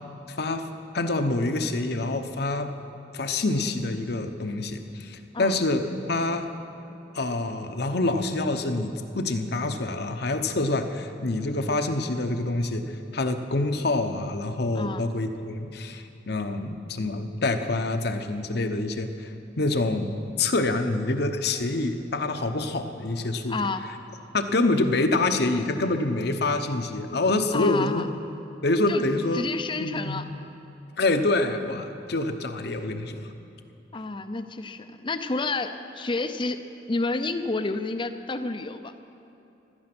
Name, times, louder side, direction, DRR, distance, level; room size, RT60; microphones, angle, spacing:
voice 1, 0.3-0.7 0.9-2.7 3.1-5.8 6.1-6.5 7.1-23.6 24.3-28.1 28.6-29.5 29.8-30.3 31.0-33.3, left 2 dB, 60° left, 7 dB, 0.9 m, -26 dB
voice 2, 14.7-15.1 23.5-23.9 27.5-28.1 28.9-29.1 29.3-30.2 33.9-36.6 36.9-38.9, left 3 dB, 25° left, 9 dB, 0.6 m, -30 dB
16.5 x 12.5 x 6.1 m, 2.8 s
head